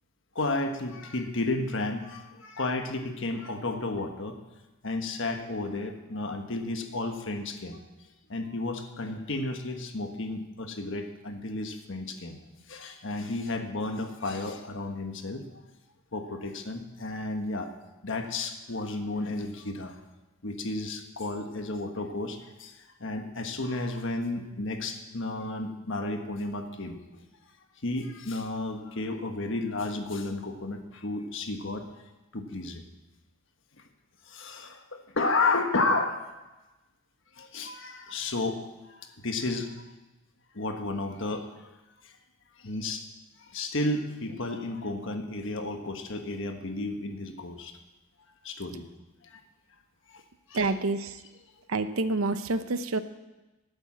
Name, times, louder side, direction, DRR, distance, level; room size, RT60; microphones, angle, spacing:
voice 1, 0.3-4.4 4.8-7.8 8.3-12.4 12.7-15.5 16.1-17.8 18.0-20.0 20.4-27.3 27.8-31.9 32.3-32.8 34.3-36.2 37.4-38.6 38.9-39.7 40.5-41.7 42.0-42.1 42.6-43.1 43.4-47.7 48.4-48.8 49.2-49.4 50.1-50.2 50.5-50.7, left 2 dB, 60° left, 5 dB, 1.4 m, -32 dB
voice 2, 50.5-51.2 51.7-53.0, right 3 dB, 75° right, 11 dB, 0.8 m, -28 dB
12.0 x 8.9 x 7.5 m, 1.1 s
head